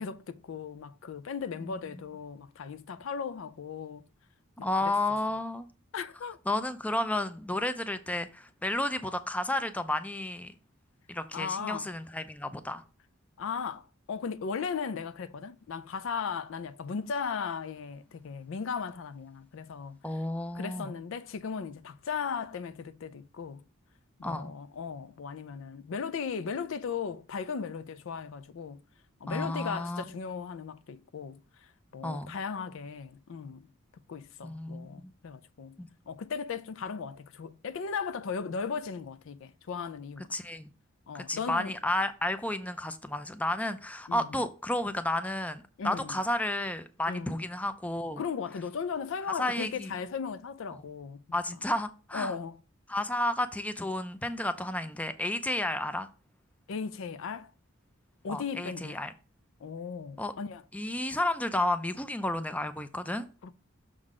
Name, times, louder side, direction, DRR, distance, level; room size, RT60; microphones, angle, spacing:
voice 1, 0.0-4.1 4.6-4.9 5.9-6.4 11.3-11.9 13.4-20.0 20.5-23.7 24.2-28.8 29.2-31.4 31.9-33.7 34.1-35.8 36.1-40.3 41.1-41.7 44.1-44.4 45.8-46.2 47.1-47.4 48.2-51.2 52.1-52.6 56.7-57.5 58.2-59.0 59.6-60.6 63.4-63.5, left 6 dB, 70° left, 0.4 m, -37 dB
voice 2, 4.6-5.7 6.5-10.5 11.1-12.8 20.0-20.9 24.2-24.5 29.3-30.0 32.0-32.3 34.4-35.1 35.8-35.9 40.3-40.7 41.1-48.2 49.4-50.0 51.3-52.4 52.9-56.1 58.3-59.1 60.2-60.3 60.7-63.3, left 1 dB, 5° left, 0.4 m, -32 dB
6.4 x 3.8 x 4.8 m
head